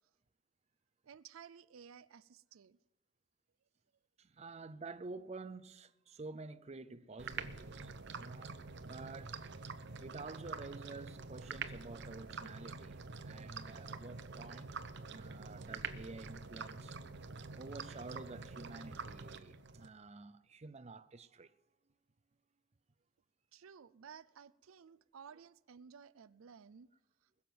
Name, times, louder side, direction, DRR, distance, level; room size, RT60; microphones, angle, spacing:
voice 1, 1.0-2.8 23.5-26.9, right 7 dB, 80° right, 0.4 m, -55 dB
voice 2, 4.2-9.4 10.0-14.7 15.1-17.0 17.5-21.5, right 3 dB, 30° right, 0.5 m, -50 dB
sound 1, 7.2-19.9, right 4 dB, 55° right, 0.8 m, -46 dB
20.5 x 7.2 x 7.7 m
head